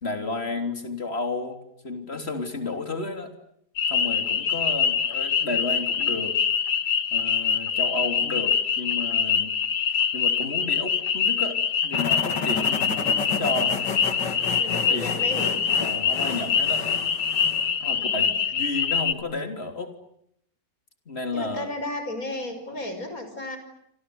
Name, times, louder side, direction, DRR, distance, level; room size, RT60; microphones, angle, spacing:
voice 1, 0.0-3.3 3.9-6.4 7.1-9.5 10.1-13.8 14.9-15.0 15.8-16.8 17.8-19.9 21.1-21.7, left 2 dB, 35° left, 6 dB, 3.7 m, -32 dB
sound 1, 3.8-19.1, left 7 dB, 65° left, 2.0 m, -24 dB
sound 2, 11.9-17.7, left 5 dB, 80° left, 3.2 m, -32 dB
voice 2, 14.6-15.6 18.0-18.3 21.3-23.6, left 1 dB, 50° left, 8 dB, 6.1 m, -34 dB
28.0 x 26.0 x 8.0 m, 0.74 s
omnidirectional pair, 1.9 m